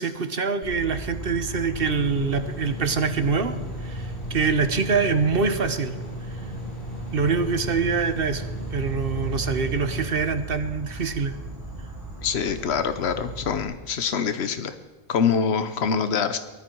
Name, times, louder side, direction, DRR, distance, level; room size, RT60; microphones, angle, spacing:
voice 1, 0.0-3.6 3.8-5.9 7.1-8.4 8.7-11.3, right 5 dB, 65° right, 10 dB, 1.3 m, -25 dB
Insect, 0.6-13.6, right 2 dB, 30° left, 4.2 m, -37 dB
sound 1, 1.8-10.1, equal, 50° left, 5.9 m, -36 dB
voice 2, 12.2-14.7 15.1-16.4, left 6 dB, 85° left, 10 dB, 1.1 m, -25 dB
19.5 x 13.5 x 4.6 m, 1.2 s
omnidirectional pair, 1.1 m